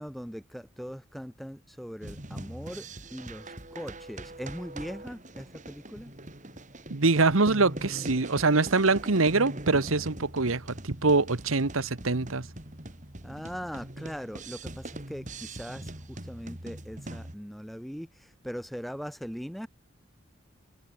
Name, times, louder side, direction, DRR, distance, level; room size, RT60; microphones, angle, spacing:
voice 1, 0.0-6.1 13.2-19.7, equal, ahead, 2.6 m, -40 dB
sound 1, 2.0-17.3, right 1 dB, 35° right, 3.5 m, -42 dB
voice 2, 6.9-12.5, right 3 dB, 90° right, 1.4 m, -24 dB
head